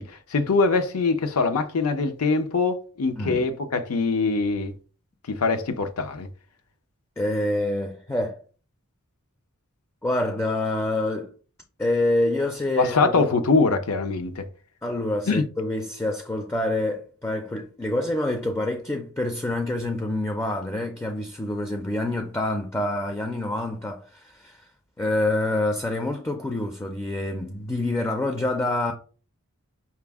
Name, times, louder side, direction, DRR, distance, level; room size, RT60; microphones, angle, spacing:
voice 1, 0.0-4.7 5.3-6.3 12.8-14.5 15.3-15.4, left 4 dB, 70° left, 0.6 m, -23 dB
voice 2, 7.2-8.4 10.0-11.3 11.8-13.2 14.8-24.6 25.0-28.9, left 1 dB, 10° left, 0.4 m, -27 dB
5.7 x 2.0 x 3.4 m
head